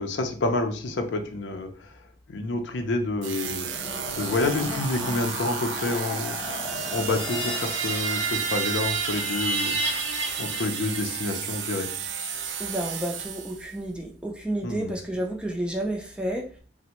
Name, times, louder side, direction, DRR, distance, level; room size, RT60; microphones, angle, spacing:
voice 1, 0.0-1.9 2.3-3.9 4.1-6.4 6.9-9.8 10.4-11.9 14.6-15.0, left 2 dB, 75° left, 6 dB, 0.5 m, -28 dB
sound 1, 3.2-13.8, right 8 dB, 90° right, 0.4 m, -34 dB
sound 2, 3.5-8.7, left 2 dB, 30° left, 0.8 m, -36 dB
sound 3, 6.7-11.4, right 3 dB, 70° right, 0.8 m, -30 dB
voice 2, 12.6-16.4, right 1 dB, 5° right, 0 dB, 0.4 m, -31 dB
3.3 x 2.0 x 2.9 m, 0.42 s
head